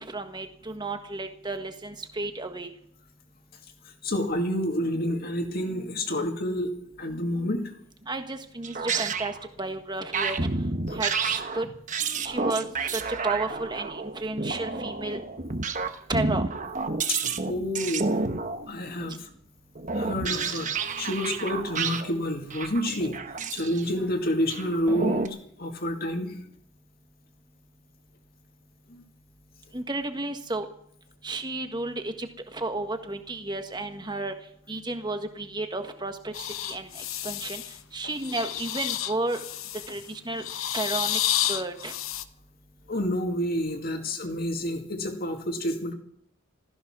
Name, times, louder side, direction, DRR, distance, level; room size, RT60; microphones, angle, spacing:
voice 1, 0.0-2.7 8.1-10.4 11.0-11.7 12.2-12.7 12.9-15.2 16.1-16.4 29.7-30.7 31.2-34.3 34.7-36.3 36.6-36.9 37.2-37.6 37.9-39.4 39.9-40.4 40.7-41.2 41.5-41.9, right 2 dB, 20° right, 7 dB, 1.5 m, -32 dB
voice 2, 4.0-6.7 7.0-7.6 10.9-11.0 17.1-18.1 18.7-19.3 19.9-23.2 23.5-26.3 28.9-29.0 42.9-45.9, left 1 dB, 45° left, 5 dB, 2.2 m, -29 dB
sound 1, 8.6-9.4 10.1-19.1 19.7-22.1 22.4-23.9 24.5-25.3, right 4 dB, 40° right, 1.1 m, -30 dB
sound 2, 36.3-37.8 38.2-40.0 40.4-42.2, left 12 dB, 80° left, 0.9 m, -30 dB
15.5 x 14.0 x 6.2 m, 0.67 s
head